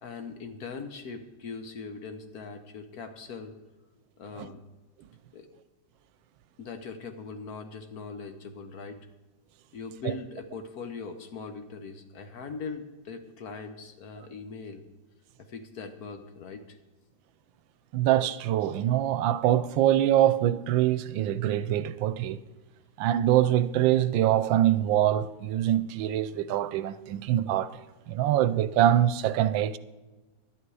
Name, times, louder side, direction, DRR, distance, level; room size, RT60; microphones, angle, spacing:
voice 1, 0.0-3.5 4.2-4.6 5.3-5.5 6.6-9.0 9.7-14.8 15.4-16.8, left 4 dB, 60° left, 1.3 m, -40 dB
voice 2, 17.9-22.4 23.0-27.8 28.1-29.8, right 12 dB, 85° right, 1.3 m, -24 dB
11.5 x 11.0 x 4.8 m
omnidirectional pair, 2.0 m